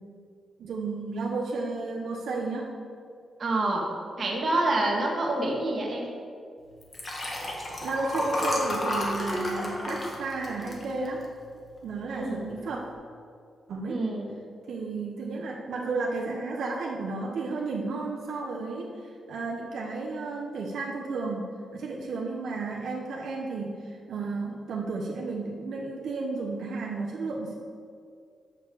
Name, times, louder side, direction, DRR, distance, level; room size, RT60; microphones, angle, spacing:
voice 1, 0.6-2.7 7.8-11.2 11.8-12.8 13.7-14.0 14.7-18.8 19.3-27.6, right 3 dB, 80° right, -2 dB, 1.0 m, -32 dB
voice 2, 3.4-3.9 4.2-6.1 12.1-12.4 13.9-14.3, right 2 dB, 40° right, -1 dB, 1.6 m, -27 dB
Liquid, 6.8-11.5 11.9-12.2 12.5-12.6, left 1 dB, 30° left, 1.5 m, -31 dB
6.7 x 6.5 x 6.8 m, 2.3 s
wide cardioid pair, 145°, 0 cm